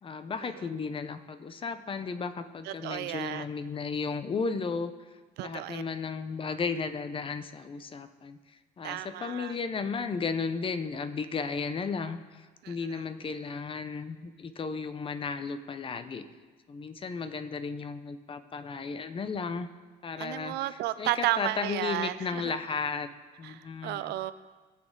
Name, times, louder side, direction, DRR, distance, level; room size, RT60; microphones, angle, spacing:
voice 1, 0.0-4.9 5.4-8.4 8.8-16.2 16.7-19.7 20.0-20.6 21.0-23.1 23.4-24.1, left 5 dB, 30° left, 11 dB, 0.7 m, -34 dB
voice 2, 2.6-3.5 5.4-5.8 8.8-9.6 12.6-13.0 20.2-22.5 23.4-24.3, right 14 dB, 80° right, 13 dB, 0.5 m, -33 dB
18.0 x 6.2 x 3.9 m, 1.3 s
cardioid pair, 110°, 17 cm